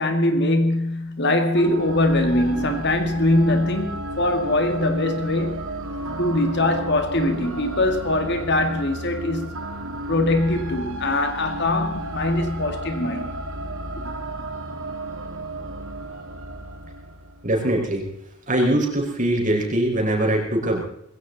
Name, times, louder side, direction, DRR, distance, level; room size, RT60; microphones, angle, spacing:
voice 1, 0.0-5.7 6.0-9.5 10.1-13.4, left 1 dB, 55° left, 2.0 m, -22 dB
sound 1, 1.5-17.8, right 1 dB, 70° right, 2.3 m, -33 dB
voice 2, 17.4-18.0 18.5-20.8, right 1 dB, 35° right, 5.0 m, -22 dB
21.0 x 16.5 x 4.1 m
head